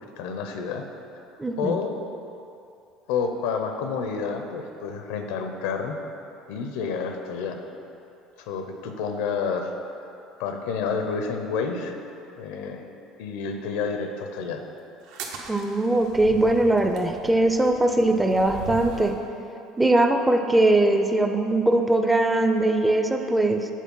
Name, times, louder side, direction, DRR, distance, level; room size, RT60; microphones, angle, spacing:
voice 1, 0.2-0.9 1.6-1.9 3.1-6.0 6.5-7.6 8.4-9.7 10.4-11.9 12.4-12.8 13.2-14.6, left 5 dB, 85° left, 5 dB, 0.7 m, -29 dB
voice 2, 1.4-1.8 15.5-19.2 19.8-23.7, right 2 dB, 10° right, 5 dB, 0.4 m, -21 dB
sound 1, 15.0-19.2, right 5 dB, 75° right, 0.8 m, -39 dB
7.4 x 4.3 x 5.4 m, 2.7 s
cardioid pair, 145°, 0 cm